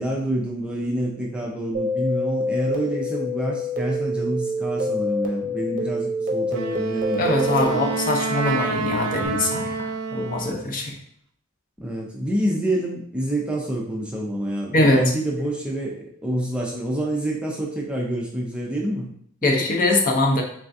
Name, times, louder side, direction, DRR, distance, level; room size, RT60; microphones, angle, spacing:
voice 1, 0.0-7.2 11.8-19.1 19.4-19.5, right 1 dB, 5° right, -2 dB, 0.4 m, -27 dB
sound 1, 1.7-9.3, left 1 dB, 40° right, 0.7 m, -27 dB
Wind instrument woodwind instrument, 6.5-10.7, right 4 dB, 70° right, 0.4 m, -28 dB
voice 2, 7.2-11.0 14.7-15.0 19.4-20.4, left 2 dB, 40° left, 2 dB, 0.6 m, -22 dB
3.5 x 3.3 x 2.6 m, 0.64 s
head